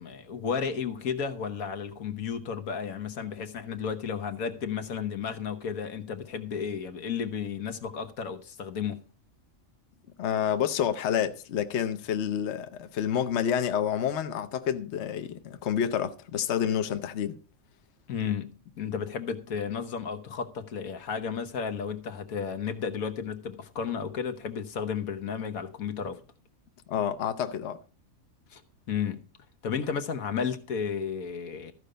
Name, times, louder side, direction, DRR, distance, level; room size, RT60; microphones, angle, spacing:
voice 1, 0.0-9.0 18.1-26.2 28.5-28.6 28.9-29.2 29.6-31.7, left 6 dB, 85° left, 1.6 m, -33 dB
voice 2, 10.2-17.4 26.9-27.8, left 9 dB, 60° left, 1.0 m, -28 dB
14.0 x 5.1 x 6.7 m
omnidirectional pair, 1.4 m